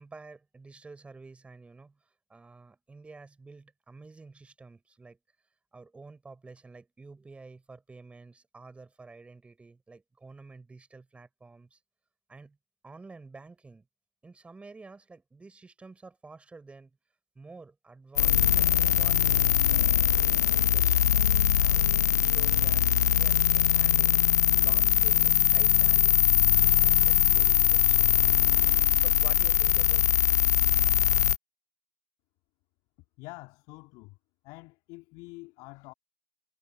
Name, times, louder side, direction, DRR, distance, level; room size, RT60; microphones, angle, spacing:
voice 1, 0.0-5.2 5.7-11.8 12.3-12.6 12.8-13.9 14.2-17.0 17.3-19.2 19.6-20.0 20.5-24.2 24.6-28.4 29.0-30.4, right 3 dB, 15° right, 5.8 m, -50 dB
sound 1, 18.2-31.4, left 10 dB, 75° left, 0.7 m, -22 dB
voice 2, 33.2-34.2 34.4-35.9, left 25 dB, 50° left, 2.6 m, -46 dB
figure-of-eight pair, 85°, 9 cm